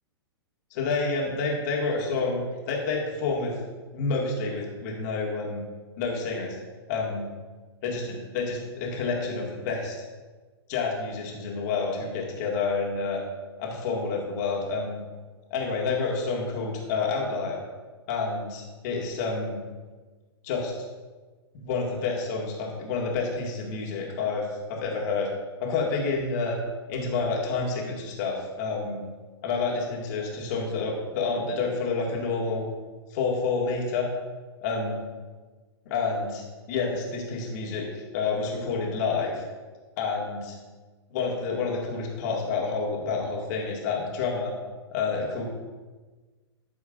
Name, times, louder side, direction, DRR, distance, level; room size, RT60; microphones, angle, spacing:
voice 1, 0.7-3.6 3.9-5.6 6.0-6.6 6.9-7.3 7.8-9.9 10.7-13.2 13.6-15.0 15.5-17.6 18.1-19.6 20.4-20.7 21.6-25.3 25.6-26.6 26.9-29.0 29.4-32.6 33.1-34.1 34.6-35.0 35.9-39.4 40.0-40.6 41.1-44.5 44.9-45.4, left 4 dB, 40° left, -2 dB, 2.2 m, -29 dB
13.0 x 6.9 x 2.6 m, 1.3 s
figure-of-eight pair, 105°, 14 cm